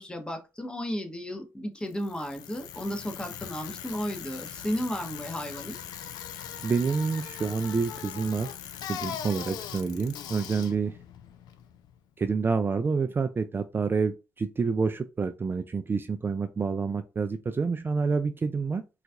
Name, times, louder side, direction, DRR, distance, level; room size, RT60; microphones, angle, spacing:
voice 1, 0.0-5.8, equal, 15° left, 0.9 m, -34 dB
Bicycle, 1.9-12.0, left 9 dB, 80° left, 0.4 m, -40 dB
voice 2, 6.6-8.5 8.9-11.0 12.2-18.8, right 4 dB, 30° right, 0.3 m, -28 dB
3.9 x 2.4 x 2.4 m
supercardioid pair, 60°, 7 cm